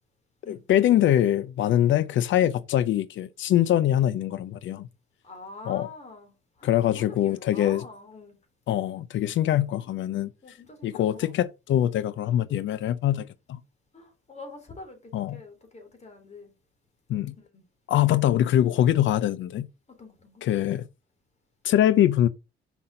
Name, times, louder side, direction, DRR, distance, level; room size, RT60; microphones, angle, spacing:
voice 1, 0.5-4.9 5.7-5.9 6.6-7.9 8.7-10.3 10.8-13.6 15.1-15.4 17.1-17.3 17.9-19.7 20.4-20.9 21.6-22.3, left 12 dB, 70° left, 0.6 m, -23 dB
voice 2, 5.2-8.4 10.4-11.4 13.9-16.5 17.5-17.6 19.9-20.4, left 3 dB, 35° left, 3.3 m, -45 dB
6.1 x 5.7 x 5.0 m
cardioid pair, 90°, 20 cm